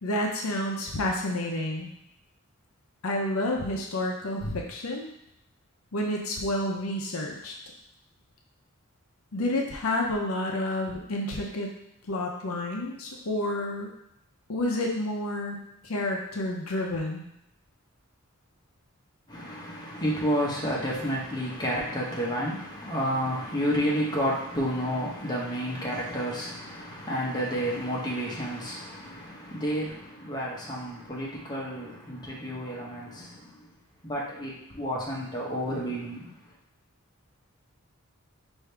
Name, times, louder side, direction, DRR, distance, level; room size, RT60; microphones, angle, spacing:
voice 1, 0.0-1.9 3.0-5.1 5.9-7.5 9.3-11.7 12.1-13.9 14.5-17.2, left 1 dB, 80° left, 0 dB, 0.7 m, -29 dB
voice 2, 19.3-33.7 34.0-36.2, equal, 20° left, -5 dB, 0.9 m, -30 dB
4.9 x 2.7 x 3.3 m, 0.78 s
head